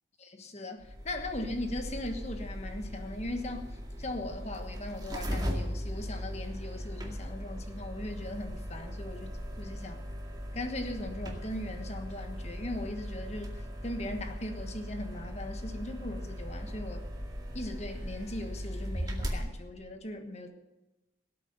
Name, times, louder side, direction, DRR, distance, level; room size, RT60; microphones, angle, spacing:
voice 1, 0.2-3.7 4.0-10.0 10.5-17.0 17.5-20.5, left 1 dB, 35° left, 1.3 m, -39 dB
sound 1, 0.8-19.4, equal, 20° right, 2.1 m, -38 dB
18.5 x 8.5 x 6.7 m
head